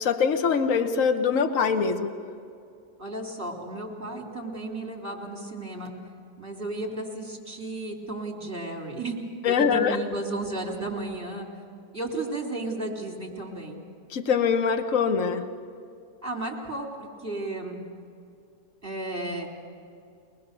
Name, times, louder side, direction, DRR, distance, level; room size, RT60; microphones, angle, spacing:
voice 1, 0.0-2.1 9.4-10.0 14.1-15.5, left 6 dB, 55° left, 6 dB, 1.4 m, -23 dB
voice 2, 3.0-5.9 6.4-9.2 9.5-11.5 11.9-13.8 16.2-17.8 18.8-19.5, right 2 dB, 10° right, -2 dB, 3.6 m, -33 dB
24.0 x 19.5 x 6.9 m, 2.5 s
omnidirectional pair, 1.7 m